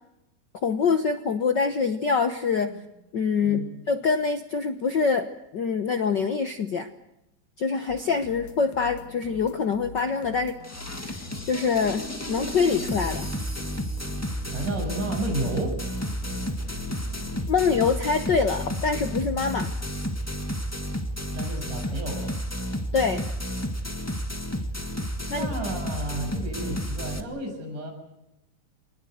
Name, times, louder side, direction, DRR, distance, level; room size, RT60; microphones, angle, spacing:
voice 1, 0.6-2.7 3.1-3.6 3.9-5.3 5.5-6.9 7.6-10.6 11.4-13.3 17.5-19.7 22.9-23.2 25.3-25.5, left 5 dB, 60° left, 8 dB, 1.1 m, -25 dB
sound 1, 7.9-19.8, left 5 dB, 75° left, 3.1 m, -44 dB
sound 2, 10.6-27.2, equal, 10° left, 0.8 m, -31 dB
Bass guitar, 11.8-19.0, right 1 dB, 60° right, 7.8 m, -51 dB
voice 2, 14.5-15.8 21.3-22.3 25.3-27.9, right 1 dB, 85° right, 3 dB, 8.5 m, -32 dB
26.5 x 19.5 x 8.0 m, 0.88 s
omnidirectional pair, 3.6 m